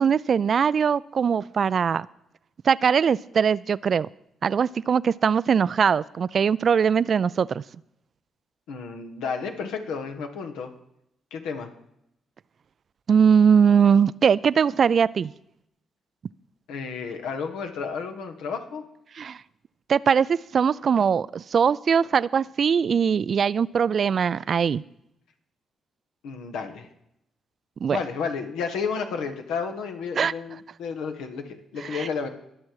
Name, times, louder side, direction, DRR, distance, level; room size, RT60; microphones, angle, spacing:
voice 1, 0.0-2.1 2.6-4.1 4.4-7.6 13.1-15.3 19.2-19.4 19.9-24.8 27.8-28.0 30.2-30.3 31.9-32.1, right 7 dB, 55° right, 20 dB, 0.4 m, -21 dB
voice 2, 8.7-10.7 11.3-11.7 16.7-18.8 26.2-26.9 27.9-32.3, left 5 dB, 80° left, 6 dB, 1.6 m, -32 dB
22.0 x 7.4 x 4.8 m, 0.79 s
supercardioid pair, 55°, 0 cm